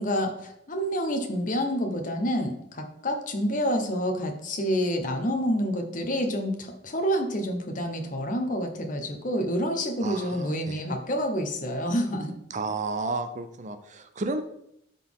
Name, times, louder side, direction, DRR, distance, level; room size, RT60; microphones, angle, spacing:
voice 1, 0.0-12.3, equal, 45° left, 5 dB, 1.2 m, -28 dB
voice 2, 10.0-10.8 12.5-14.4, right 3 dB, 40° right, 9 dB, 0.6 m, -32 dB
12.5 x 4.2 x 3.7 m, 0.77 s
head